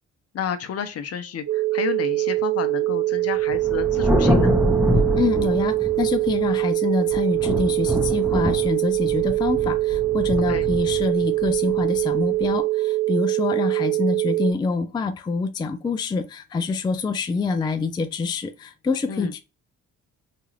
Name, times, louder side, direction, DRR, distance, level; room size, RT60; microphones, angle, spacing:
voice 1, 0.3-4.6 10.5-10.7 19.1-19.3, left 8 dB, 55° left, 0.6 m, -31 dB
sound 1, 1.5-14.5, right 18 dB, 60° right, 0.6 m, -23 dB
Thunder, 3.5-6.6 7.1-12.4, equal, 5° right, 0.7 m, -25 dB
voice 2, 5.1-19.4, left 4 dB, 15° left, 0.3 m, -26 dB
2.9 x 2.4 x 3.1 m
cardioid pair, 90°, 30 cm